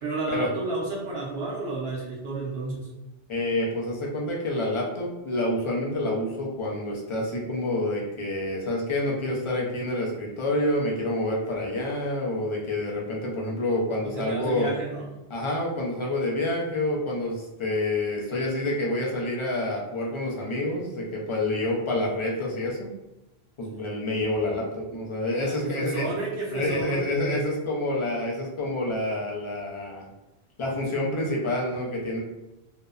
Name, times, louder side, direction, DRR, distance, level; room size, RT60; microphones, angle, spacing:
voice 1, 0.0-2.9 14.0-15.1 23.7-23.8 25.3-27.1, right 2 dB, 70° right, -5 dB, 0.9 m, -31 dB
voice 2, 3.3-14.7 15.3-22.9 23.6-26.1 26.5-30.1 30.6-32.2, left 1 dB, 40° left, -3 dB, 0.4 m, -28 dB
2.7 x 2.0 x 2.3 m, 1.0 s
omnidirectional pair, 1.1 m